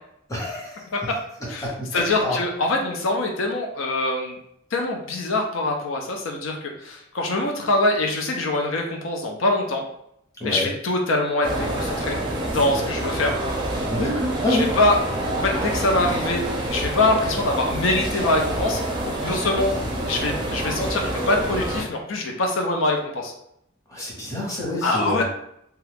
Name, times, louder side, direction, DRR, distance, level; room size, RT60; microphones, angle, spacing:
voice 1, 0.3-0.8 1.6-1.9 2.2-2.4 10.4-10.7 13.9-14.7 23.9-25.2, left 1 dB, 15° left, -5 dB, 0.9 m, -26 dB
voice 2, 1.9-4.4 4.7-6.6 6.8-9.8 10.4-12.2 12.5-13.3 14.0-14.1 14.5-15.0 15.2-18.8 19.0-19.7 20.0-23.3 24.8-25.2, left 2 dB, 85° left, 1 dB, 0.5 m, -24 dB
sound 1, 11.4-21.8, right 1 dB, 25° right, 0.5 m, -27 dB
2.8 x 2.3 x 3.3 m, 0.75 s
head